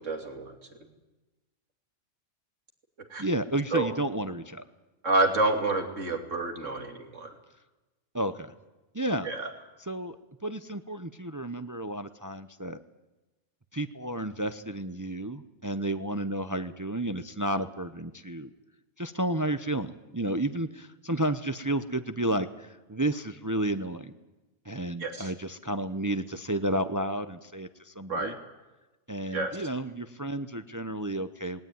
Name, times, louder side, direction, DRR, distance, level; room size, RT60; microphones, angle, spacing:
voice 1, 0.0-0.5 3.1-3.2 3.7-3.9 5.0-7.3 9.2-9.5 25.0-25.3 28.1-28.3 29.3-29.6, right 3 dB, 90° right, 3 dB, 3.3 m, -28 dB
voice 2, 3.2-4.6 8.1-8.5 8.9-9.3 9.8-10.2 10.4-12.8 13.7-18.5 19.0-24.1 24.6-28.3 29.1-31.6, right 1 dB, 20° right, 10 dB, 0.7 m, -31 dB
19.5 x 19.0 x 9.4 m, 1.1 s
omnidirectional pair, 1.3 m